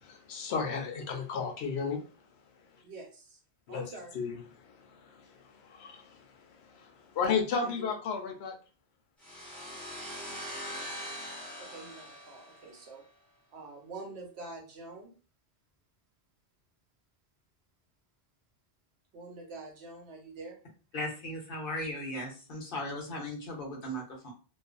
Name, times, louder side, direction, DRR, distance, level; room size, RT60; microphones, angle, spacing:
voice 1, 0.0-2.0 3.7-3.9 4.1-4.4 4.6-5.3 5.6-6.2 6.7-8.6, left 5 dB, 85° left, 0.9 m, -33 dB
voice 2, 2.8-3.4 3.7-4.2 7.6-7.9 11.6-13.0 13.5-15.1 19.1-20.6, right 3 dB, 85° right, 1.1 m, -46 dB
sound 1, 9.2-12.9, equal, ahead, 1.0 m, -42 dB
voice 3, 20.9-24.3, left 1 dB, 60° left, 0.9 m, -37 dB
2.4 x 2.3 x 2.4 m
omnidirectional pair, 1.1 m